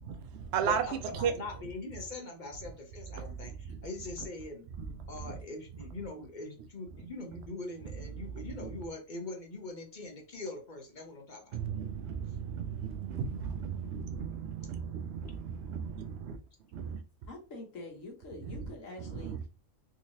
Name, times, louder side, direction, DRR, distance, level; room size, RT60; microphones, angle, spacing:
voice 1, 0.0-0.8 1.1-1.3 3.4-3.9 4.8-4.9 5.2-5.3 8.2-8.7 11.5-16.4 16.7-17.0 18.5-18.6 19.1-19.4, right 7 dB, 65° right, 0.7 m, -35 dB
voice 2, 0.7-4.7 5.1-11.6, left 2 dB, 40° left, 0.8 m, -42 dB
voice 3, 17.3-19.5, left 2 dB, 70° left, 1.4 m, -45 dB
3.7 x 3.0 x 2.7 m
omnidirectional pair, 1.4 m